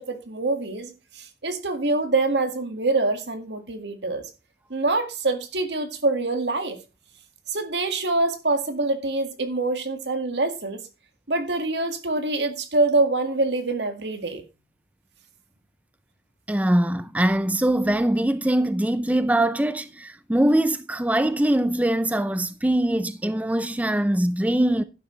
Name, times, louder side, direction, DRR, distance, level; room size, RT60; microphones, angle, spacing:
voice 1, 0.0-4.3 4.7-6.8 7.5-10.8 11.3-14.4, right 2 dB, 85° right, 1.9 m, -25 dB
voice 2, 16.5-24.8, right 1 dB, 10° right, 0.4 m, -22 dB
11.5 x 9.3 x 3.2 m
head